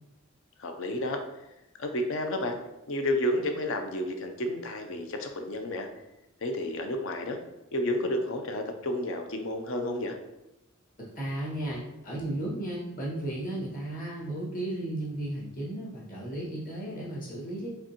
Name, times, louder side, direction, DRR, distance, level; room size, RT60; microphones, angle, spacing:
voice 1, 0.6-1.2 1.8-2.6 2.9-5.9 6.4-7.4 7.7-10.2, left 1 dB, 65° left, 5 dB, 0.6 m, -31 dB
voice 2, 11.0-17.7, right 1 dB, 40° left, -6 dB, 1.7 m, -34 dB
5.0 x 3.5 x 2.9 m, 0.93 s
head